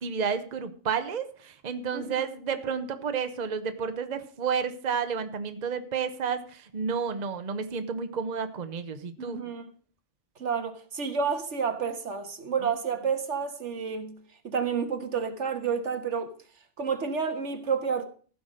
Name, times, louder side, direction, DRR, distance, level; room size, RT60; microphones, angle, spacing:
voice 1, 0.0-9.4 12.6-12.7, right 6 dB, 40° right, 1.0 m, -31 dB
voice 2, 1.9-2.3 9.2-9.7 10.4-16.3 16.8-18.0, right 6 dB, 80° right, 1.7 m, -30 dB
15.0 x 5.9 x 6.3 m
omnidirectional pair, 1.2 m